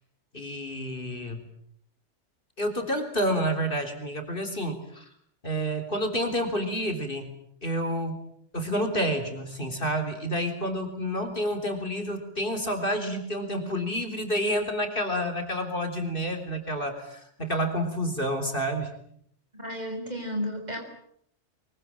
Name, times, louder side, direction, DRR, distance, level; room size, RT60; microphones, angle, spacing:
voice 1, 0.3-1.4 2.6-5.1 5.4-7.3 7.6-8.2 8.5-18.9, equal, 50° left, 6 dB, 4.2 m, -29 dB
voice 2, 19.5-20.8, equal, 35° right, 4 dB, 6.5 m, -32 dB
24.5 x 24.0 x 8.9 m, 0.70 s
omnidirectional pair, 1.2 m